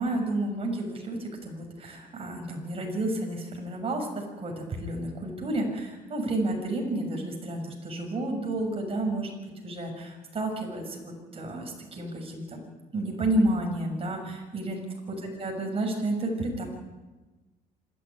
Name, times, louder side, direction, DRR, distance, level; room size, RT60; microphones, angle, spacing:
voice 1, 0.0-9.3 9.6-12.6 12.9-14.8 15.1-16.6, right 1 dB, 35° right, 2 dB, 6.6 m, -31 dB
26.5 x 12.5 x 10.0 m, 1.2 s
cardioid pair, 110°, 17 cm